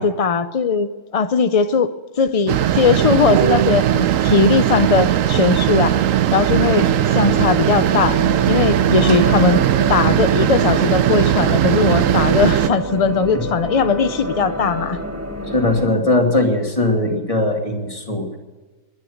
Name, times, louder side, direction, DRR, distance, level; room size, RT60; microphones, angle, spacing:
voice 1, 0.0-1.9 2.2-5.9 6.3-6.8 7.1-8.2 8.5-9.6 9.9-15.0, left 5 dB, 50° left, 11 dB, 0.4 m, -18 dB
sound 1, 2.5-12.7, right 11 dB, 70° right, 1.0 m, -18 dB
sound 2, 6.5-15.9, equal, 10° right, 2.0 m, -29 dB
voice 2, 15.5-18.4, left 2 dB, 25° left, 2 dB, 2.6 m, -19 dB
22.0 x 10.0 x 6.5 m, 1.3 s
omnidirectional pair, 1.5 m